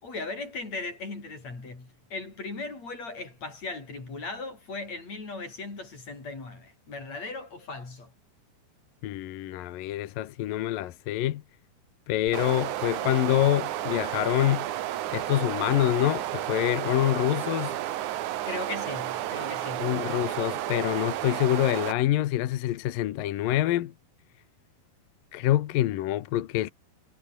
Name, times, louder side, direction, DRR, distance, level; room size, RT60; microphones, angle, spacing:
voice 1, 0.0-8.1 18.5-20.0, left 3 dB, 40° left, 7.5 m, -38 dB
voice 2, 9.0-11.4 12.1-14.7 15.1-17.8 19.8-23.9 25.3-26.7, left 14 dB, 70° left, 2.4 m, -26 dB
sound 1, 12.3-21.9, right 13 dB, 70° right, 1.9 m, -32 dB
omnidirectional pair, 5.0 m